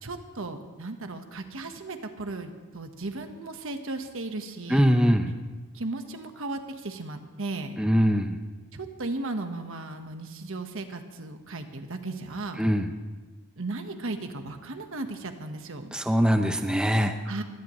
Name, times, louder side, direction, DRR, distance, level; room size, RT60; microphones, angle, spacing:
voice 1, 0.0-4.9 5.7-7.8 8.7-12.6 13.6-15.9 17.2-17.4, right 2 dB, 65° right, 6 dB, 1.3 m, -36 dB
voice 2, 4.7-5.3 7.8-8.3 12.6-12.9 15.9-17.1, equal, 5° right, 6 dB, 0.7 m, -22 dB
22.5 x 17.5 x 3.2 m, 1.2 s
head